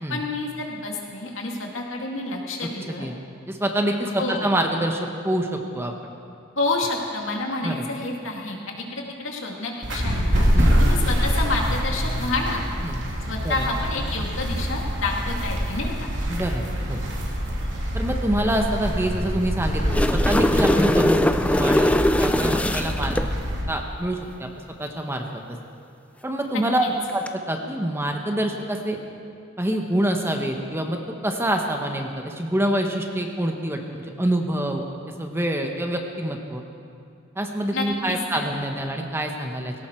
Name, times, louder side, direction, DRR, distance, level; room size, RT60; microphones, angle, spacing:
voice 1, 0.1-3.1 4.2-4.5 6.6-10.5 10.8-12.6 13.3-16.1 26.5-26.9 37.7-38.4, left 3 dB, 75° left, 0 dB, 2.3 m, -29 dB
voice 2, 3.5-5.9 7.6-7.8 10.5-10.9 12.8-13.0 13.4-13.6 16.3-17.0 17.9-21.2 21.5-23.3 23.7-24.5 24.8-25.2 26.2-29.0 29.6-34.8 35.2-36.6 37.3-39.7, right 1 dB, 10° right, 3 dB, 1.1 m, -26 dB
sound 1, 9.8-23.6, equal, 65° right, 2.9 m, -25 dB
sound 2, 19.6-23.3 27.1-27.3, left 1 dB, 5° left, 0.4 m, -21 dB
18.5 x 17.0 x 4.5 m, 2.4 s
head